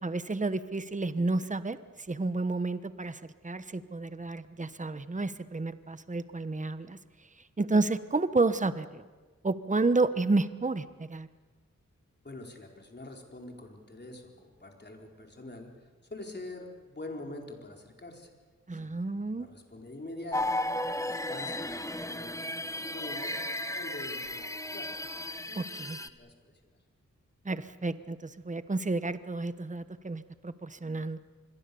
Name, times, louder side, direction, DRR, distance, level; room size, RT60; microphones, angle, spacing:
voice 1, 0.0-1.8 2.1-7.0 7.6-9.0 9.4-11.3 18.7-19.5 25.5-26.0 27.4-31.2, right 3 dB, 25° right, 12 dB, 1.1 m, -30 dB
voice 2, 12.2-15.7 16.1-18.3 18.7-23.3 23.7-24.9 25.5-26.5, left 2 dB, 35° left, 1 dB, 4.5 m, -45 dB
sound 1, 20.3-26.1, left 1 dB, 10° left, 1.3 m, -34 dB
26.0 x 22.0 x 7.0 m, 1.4 s
wide cardioid pair, 70°, 29 cm